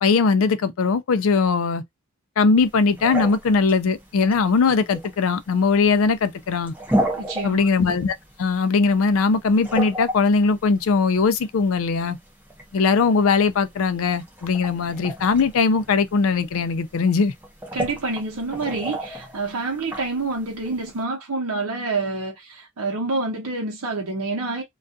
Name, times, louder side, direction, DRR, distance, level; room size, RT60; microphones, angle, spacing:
voice 1, 0.0-1.8 2.4-6.7 7.4-12.2 12.7-17.3, left 4 dB, 70° left, 0.4 m, -20 dB
sound 1, 2.6-21.0, right 1 dB, 10° right, 0.6 m, -33 dB
voice 2, 7.1-7.7 17.7-24.6, right 3 dB, 80° right, 0.8 m, -27 dB
2.3 x 2.3 x 2.6 m
head